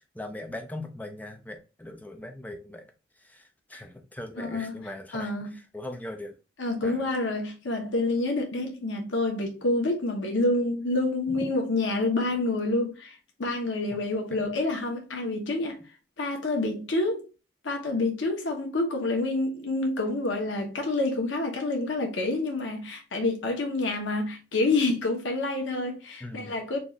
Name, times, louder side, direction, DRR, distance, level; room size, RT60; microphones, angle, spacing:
voice 1, 0.0-2.9 3.2-6.4 6.8-7.1 11.3-11.5 14.3-14.5 26.2-26.6, left 1 dB, 10° left, 0.5 m, -40 dB
voice 2, 4.4-4.8 5.1-5.6 6.6-15.8 16.2-17.3 17.6-26.8, left 2 dB, 90° left, 0.9 m, -28 dB
3.9 x 2.4 x 3.0 m
head